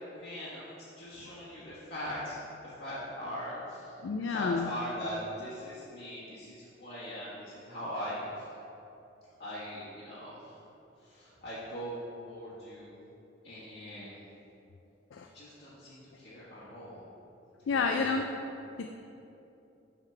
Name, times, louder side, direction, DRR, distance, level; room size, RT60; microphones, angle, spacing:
voice 1, 0.1-8.4 9.4-10.6 11.0-13.0 13.4-14.2 15.3-17.0 17.7-18.1, equal, 55° left, -12 dB, 1.4 m, -41 dB
voice 2, 4.0-4.7 15.1-15.3 17.7-18.3 18.8-18.9, left 4 dB, 85° left, 4 dB, 0.4 m, -29 dB
7.2 x 6.6 x 3.3 m, 2.9 s
head